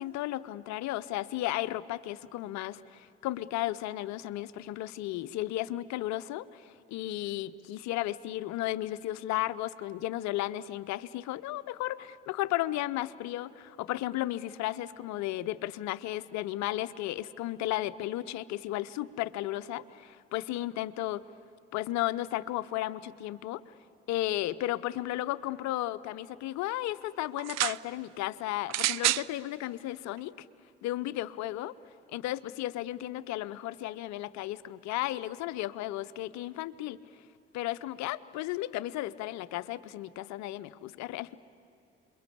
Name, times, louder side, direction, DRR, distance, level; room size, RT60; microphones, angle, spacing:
voice 1, 0.0-21.2 21.7-23.6 24.1-30.5 30.8-31.8 32.1-37.0 37.5-41.4, left 15 dB, 70° left, 16 dB, 0.8 m, -34 dB
sound 1, 27.4-27.8 28.7-29.3 30.2-30.3, right 16 dB, 60° right, 0.6 m, -28 dB
28.0 x 22.5 x 8.5 m, 2.7 s
hypercardioid pair, 45°, 30 cm